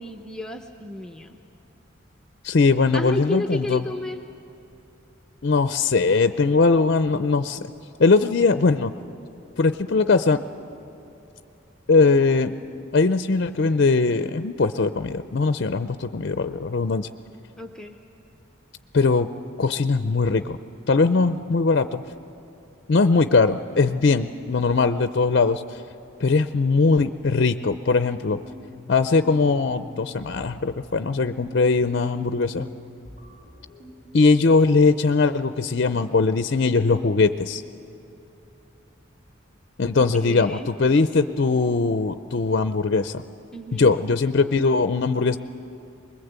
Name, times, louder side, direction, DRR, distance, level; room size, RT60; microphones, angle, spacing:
voice 1, 0.0-1.4 2.9-4.2 17.6-18.0 24.0-24.4 40.2-40.7 43.5-43.9, left 1 dB, 5° left, 3 dB, 0.6 m, -32 dB
voice 2, 2.4-3.8 5.4-7.7 8.0-8.9 9.6-10.4 11.9-12.5 12.9-17.1 18.9-19.3 19.6-20.6 20.9-22.0 22.9-25.6 26.2-28.4 28.9-32.7 34.1-37.6 39.8-43.2 43.7-45.4, left 4 dB, 50° left, 10 dB, 0.5 m, -20 dB
sound 1, 27.7-34.7, left 1 dB, 40° right, 4.0 m, -44 dB
24.5 x 21.0 x 8.1 m, 2.9 s
head